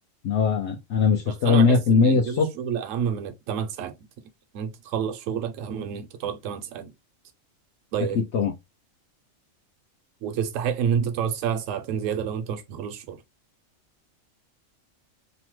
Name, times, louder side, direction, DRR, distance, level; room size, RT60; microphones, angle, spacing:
voice 1, 0.2-2.5 8.1-8.5, left 5 dB, 65° left, 0.8 m, -20 dB
voice 2, 1.3-3.9 4.5-6.9 7.9-8.2 10.2-13.2, right 8 dB, 75° right, 1.0 m, -29 dB
2.9 x 2.1 x 3.0 m
omnidirectional pair, 1.4 m